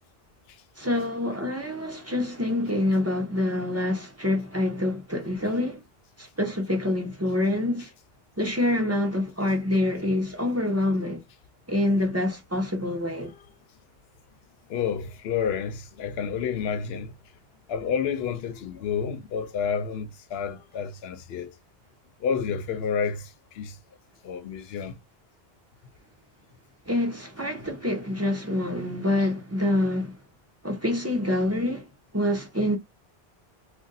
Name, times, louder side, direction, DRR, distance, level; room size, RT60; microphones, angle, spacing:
voice 1, 0.8-5.8 6.4-7.9 8.4-11.2 11.7-13.3 26.9-30.1 30.6-31.8 32.1-32.8, left 1 dB, 15° right, 0.7 m, -26 dB
voice 2, 14.7-17.1 17.7-21.5 22.2-23.8 24.2-25.0, left 7 dB, 75° left, 0.8 m, -30 dB
2.5 x 2.2 x 3.9 m
omnidirectional pair, 1.1 m